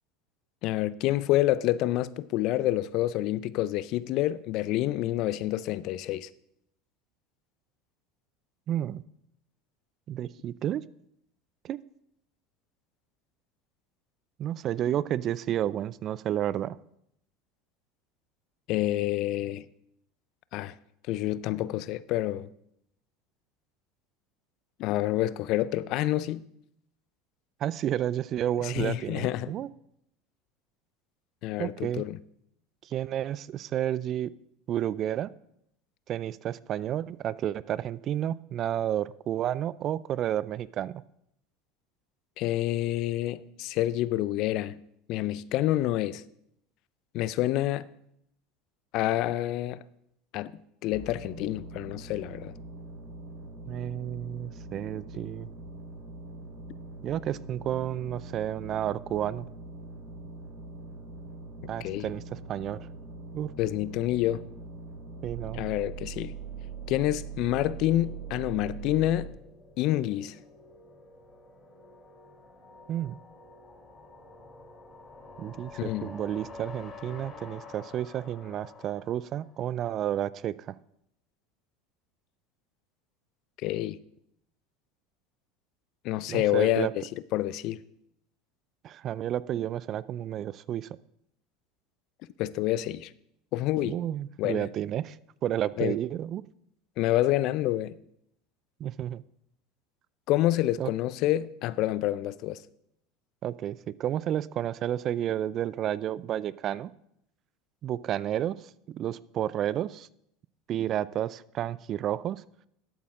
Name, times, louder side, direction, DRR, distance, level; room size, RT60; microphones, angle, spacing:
voice 1, 0.6-6.3 18.7-19.6 20.5-20.7 21.1-22.5 24.8-26.4 28.6-29.5 31.4-32.2 42.4-44.8 45.1-46.2 47.1-47.9 48.9-49.8 50.3-50.6 50.8-52.5 61.8-62.1 63.6-64.4 65.5-66.4 66.9-69.3 69.8-70.4 75.8-76.1 83.6-84.0 86.0-87.0 87.3-87.8 92.4-93.1 93.5-94.0 94.4-94.7 95.8-96.0 97.0-97.9 100.3-102.6, left 15 dB, 60° left, 0.4 m, -28 dB
voice 2, 8.7-9.0 10.1-10.8 11.6-11.8 14.4-16.8 27.6-29.7 31.6-32.0 32.8-34.3 34.7-35.3 36.1-41.0 53.7-55.5 57.0-59.5 61.7-62.9 63.3-63.5 65.2-65.6 72.9-73.2 75.4-80.7 86.3-86.9 88.8-90.9 93.8-95.2 95.4-96.4 98.8-99.2 100.8-100.9 103.4-106.9 107.8-110.1 110.7-112.4, right 11 dB, 45° right, 0.4 m, -31 dB
sound 1, 50.9-69.3, right 4 dB, 70° right, 4.3 m, -42 dB
sound 2, 64.7-79.9, left 3 dB, 25° left, 3.2 m, -50 dB
13.0 x 8.5 x 3.7 m
hypercardioid pair, 85°, 0 cm